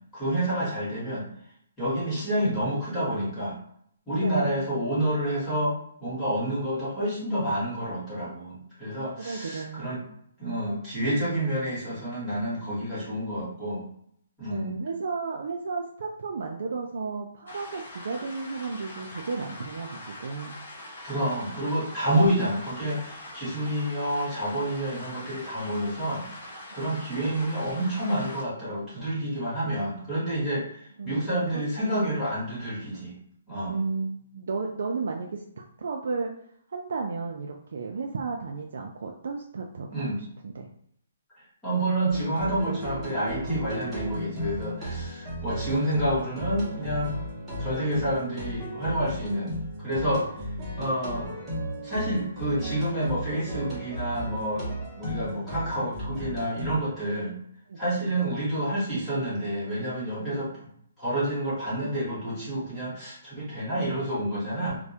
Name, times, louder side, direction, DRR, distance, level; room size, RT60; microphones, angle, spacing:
voice 1, 0.1-1.2 1.8-3.6 4.1-10.0 10.4-13.8 14.4-14.7 21.0-33.1 33.5-33.8 39.9-40.2 41.6-47.2 47.6-49.5 49.8-50.3 50.8-51.3 51.8-54.7 55.0-57.3 57.8-60.5 61.0-64.8, right 1 dB, 5° left, -11 dB, 1.0 m, -29 dB
voice 2, 4.2-4.6 9.2-9.9 14.4-20.6 26.7-27.3 31.0-32.0 33.7-35.3 35.6-36.3 36.7-40.7 45.7-45.8 50.2-50.3 57.7-58.1 60.2-60.5, right 4 dB, 60° right, 1 dB, 0.3 m, -34 dB
sound 1, 17.5-28.4, left 1 dB, 55° left, 0.8 m, -43 dB
sound 2, 42.1-56.8, equal, 10° right, 0.6 m, -35 dB
2.2 x 2.1 x 2.7 m, 0.68 s
hypercardioid pair, 175°, 0 cm